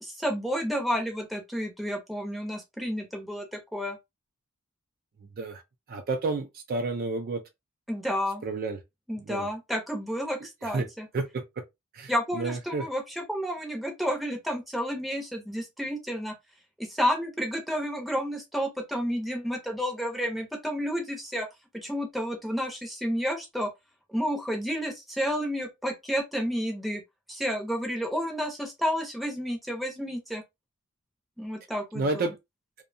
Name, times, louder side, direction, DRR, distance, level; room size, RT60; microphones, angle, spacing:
voice 1, 0.0-4.0 7.9-8.4 9.1-11.1 12.1-16.3 16.8-21.5 21.7-23.7 24.1-27.0 27.3-30.4 31.4-32.3, equal, ahead, 0.6 m, -31 dB
voice 2, 5.9-7.4 8.4-8.8 9.3-9.5 10.6-10.9 11.1-11.4 11.9-12.9 31.9-32.4, right 3 dB, 40° right, 0.3 m, -30 dB
2.6 x 2.1 x 2.5 m
head